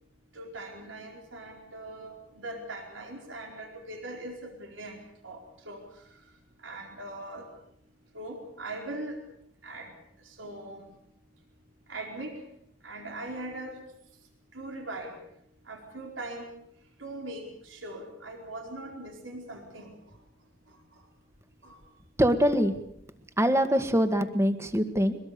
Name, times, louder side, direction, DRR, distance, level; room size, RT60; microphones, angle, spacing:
voice 1, 0.3-5.4 5.6-5.8 6.6-7.5 8.1-9.2 9.6-9.9 10.2-10.9 11.9-12.4 12.8-13.8 14.5-15.2 15.7-16.5 17.0-19.9 21.6-21.8, right 2 dB, 90° right, 2 dB, 4.5 m, -40 dB
voice 2, 22.2-22.7 23.4-25.2, equal, 15° right, 9 dB, 1.8 m, -23 dB
23.5 x 22.0 x 6.8 m, 0.74 s
head